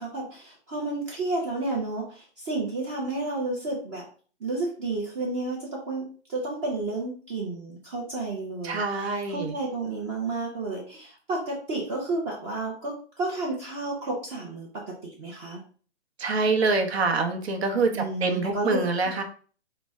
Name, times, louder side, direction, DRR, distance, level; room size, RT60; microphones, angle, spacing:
voice 1, 0.0-4.0 4.4-14.7 15.0-15.6 17.9-18.8 19.2-19.3, right 2 dB, 25° right, -3 dB, 0.7 m, -31 dB
voice 2, 8.6-9.5 16.2-19.2, right 3 dB, 60° right, 5 dB, 1.0 m, -25 dB
4.9 x 2.2 x 3.5 m, 0.41 s
hypercardioid pair, 150°, 36 cm